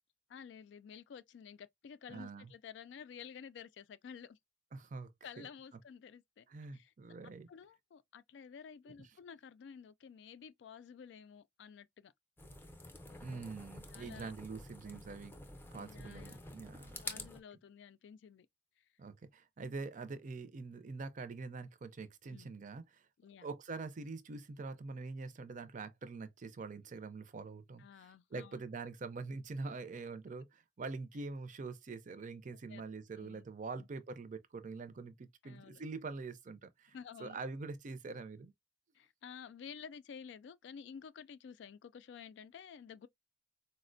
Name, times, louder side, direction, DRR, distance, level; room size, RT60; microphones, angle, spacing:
voice 1, 0.3-4.4 5.2-6.5 6.7-6.9 7.2-12.1 13.1-13.5 13.9-14.3 15.8-16.4 17.0-18.5 18.8-18.9 22.3-22.5 23.2-23.5 27.8-28.6 32.7-32.8 33.2-33.4 33.8-33.9 35.4-35.8 36.9-37.4 38.9-43.1, left 7 dB, 70° left, 0.3 m, -52 dB
voice 2, 2.1-2.5 4.7-5.1 5.4-5.5 6.5-7.5 13.2-15.3 15.7-17.3 19.0-23.0 23.4-38.5, right 4 dB, 45° right, 0.5 m, -45 dB
sound 1, 12.4-17.4, left 2 dB, 10° left, 0.5 m, -49 dB
4.0 x 2.1 x 2.5 m
head